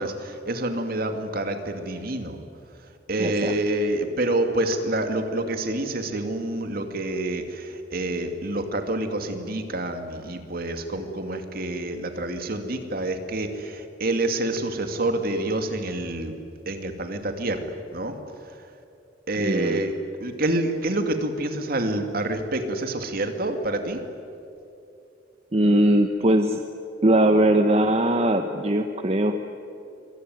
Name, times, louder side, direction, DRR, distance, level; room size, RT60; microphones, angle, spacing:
voice 1, 0.0-2.4 3.1-16.4 16.7-18.2 18.5-18.6 19.3-19.9 20.2-24.0, right 1 dB, 55° right, 6 dB, 2.5 m, -27 dB
voice 2, 3.2-3.6 19.4-19.8 25.5-26.6 27.0-29.4, right 1 dB, 35° right, 6 dB, 1.1 m, -20 dB
26.0 x 22.5 x 9.6 m, 2.7 s
head